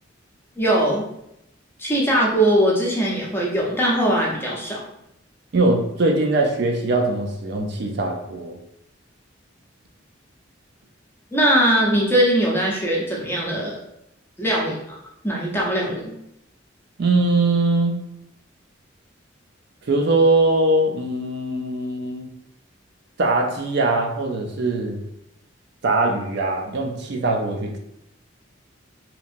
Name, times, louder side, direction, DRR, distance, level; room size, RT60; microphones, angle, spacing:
voice 1, 0.6-1.0 1.8-4.8 11.3-13.8 14.4-15.0 15.2-16.1, right 1 dB, 10° left, -4 dB, 0.6 m, -20 dB
voice 2, 5.5-8.6 17.0-18.0 19.9-22.3 23.2-25.0 25.8-27.8, right 2 dB, 55° right, 1 dB, 0.4 m, -21 dB
2.9 x 2.6 x 2.5 m, 0.80 s
head